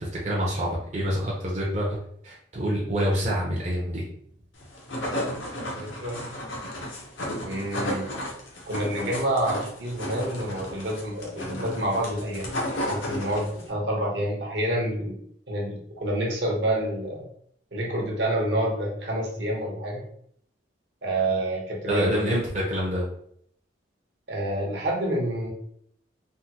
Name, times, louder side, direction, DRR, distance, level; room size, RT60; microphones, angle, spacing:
voice 1, 0.0-2.0 2.2-4.0 21.9-23.1, equal, 35° right, -5 dB, 0.6 m, -26 dB
sound 1, 4.6-13.7, left 1 dB, 80° left, 0.9 m, -33 dB
voice 2, 5.6-6.2 7.4-8.1 8.7-12.5 12.8-15.2 15.5-17.2 17.7-20.0 21.0-22.4 24.3-25.5, right 1 dB, 65° right, -1 dB, 0.9 m, -28 dB
3.5 x 2.1 x 2.8 m, 0.66 s
head